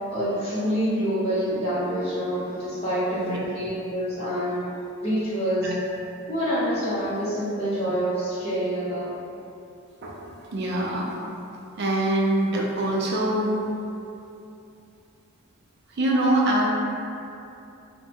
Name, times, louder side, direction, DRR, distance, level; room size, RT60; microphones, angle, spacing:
voice 1, 0.1-4.7 5.0-5.7 6.3-9.1, equal, 30° left, -12 dB, 0.6 m, -26 dB
voice 2, 10.0-11.2 11.8-13.6 15.9-16.6, right 1 dB, 50° right, -3 dB, 0.4 m, -24 dB
2.6 x 2.1 x 2.7 m, 2.7 s
head